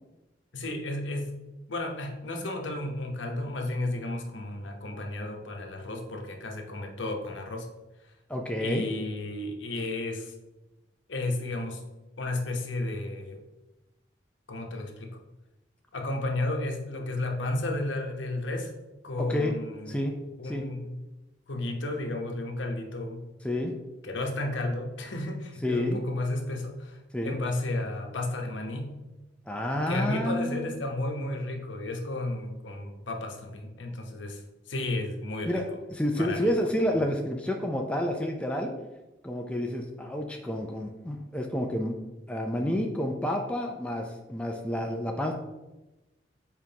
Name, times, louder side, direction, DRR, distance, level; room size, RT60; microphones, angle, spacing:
voice 1, 0.5-1.3 1.7-7.7 8.6-10.3 11.1-11.8 12.2-13.4 14.5-15.2 15.9-18.7 19.0-20.1 20.4-21.0 21.5-23.3 24.0-28.9 29.9-34.4 34.7-35.6 36.2-36.5, left 2 dB, 80° left, 2 dB, 1.0 m, -33 dB
voice 2, 8.3-8.9 19.2-19.5 19.9-20.2 20.4-20.7 23.4-23.7 25.6-26.0 27.1-27.4 29.5-30.7 35.5-35.6 35.9-38.7 39.2-41.9 42.3-45.3, left 1 dB, 5° left, 1 dB, 0.4 m, -29 dB
7.3 x 4.6 x 2.8 m, 1.1 s
head